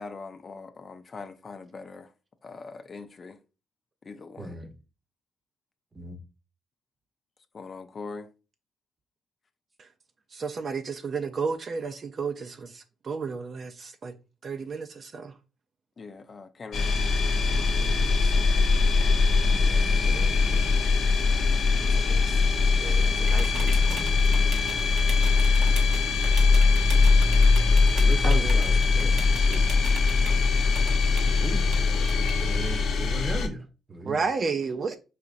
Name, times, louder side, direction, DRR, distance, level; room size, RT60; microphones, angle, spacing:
voice 1, 0.0-2.1 2.4-3.4 4.0-4.6 7.5-8.3 16.0-16.9, left 4 dB, 40° left, 0.4 m, -41 dB
voice 2, 4.4-4.7 5.9-6.2 19.4-20.8 23.6-24.3 25.1-26.2 27.9-29.7 31.1-34.3, right 2 dB, 30° right, 0.8 m, -39 dB
voice 3, 10.3-14.1 14.4-15.3 17.5-18.3 20.1-20.3 21.8-22.4 22.8-24.0 28.2-28.5 34.1-35.0, right 5 dB, 45° right, 0.4 m, -33 dB
sound 1, 16.7-33.5, left 4 dB, 65° left, 0.7 m, -21 dB
sound 2, 22.9-32.3, right 4 dB, 70° right, 0.8 m, -42 dB
4.8 x 2.9 x 2.5 m
cardioid pair, 90°, 0 cm